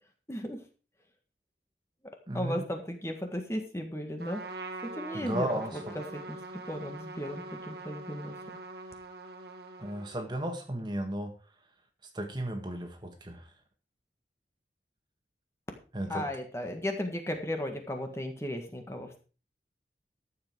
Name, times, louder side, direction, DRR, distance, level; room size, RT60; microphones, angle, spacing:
voice 1, 0.3-0.6 2.3-4.4 4.8-6.4 6.7-8.6 16.1-19.2, left 1 dB, 15° left, 1.7 m, -35 dB
voice 2, 2.3-2.6 5.1-5.9 9.8-11.3 12.2-13.4 15.9-16.3, right 1 dB, 25° right, 1.8 m, -34 dB
Trumpet, 4.2-10.4, right 3 dB, 65° right, 1.9 m, -43 dB
13.0 x 7.9 x 4.7 m
head